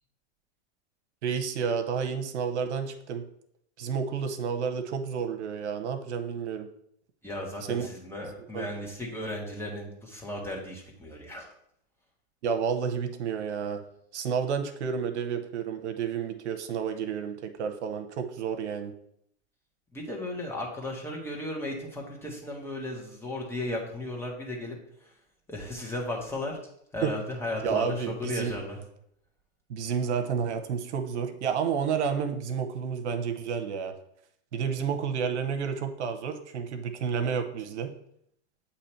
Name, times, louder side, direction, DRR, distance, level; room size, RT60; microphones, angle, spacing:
voice 1, 1.2-3.3 3.8-6.7 7.7-7.9 8.5-8.7 12.4-13.8 14.1-18.9 27.0-27.1 27.6-28.5 29.7-33.9 34.5-37.9, right 6 dB, 80° right, 7 dB, 0.9 m, -30 dB
voice 2, 7.2-11.5 19.9-24.7 25.0-25.1 25.5-26.6 26.9-28.8, left 1 dB, 5° left, -2 dB, 1.4 m, -35 dB
8.4 x 2.9 x 4.4 m, 0.70 s
hypercardioid pair, 120°, 34 cm